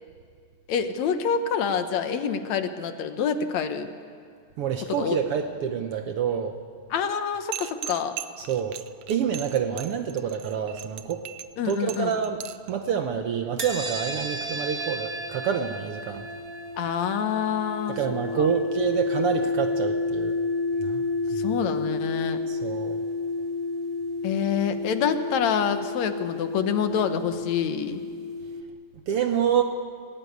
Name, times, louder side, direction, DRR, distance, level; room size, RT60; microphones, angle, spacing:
voice 1, 0.7-3.9 4.9-5.2 6.9-8.2 11.6-12.2 16.8-18.5 21.3-22.4 24.2-28.0, left 7 dB, 70° left, 8 dB, 2.3 m, -27 dB
voice 2, 4.6-6.5 8.4-8.8 9.1-11.2 11.6-12.4 12.7-16.2 17.9-20.4 20.8-21.0 21.3-21.4 22.5-23.0 29.1-29.6, right 8 dB, 65° right, 6 dB, 1.5 m, -27 dB
sound 1, 7.5-12.7, right 11 dB, 85° right, 1.2 m, -38 dB
sound 2, 13.6-28.6, left 3 dB, 35° right, 1.6 m, -31 dB
24.0 x 18.0 x 9.3 m, 2.1 s
omnidirectional pair, 3.4 m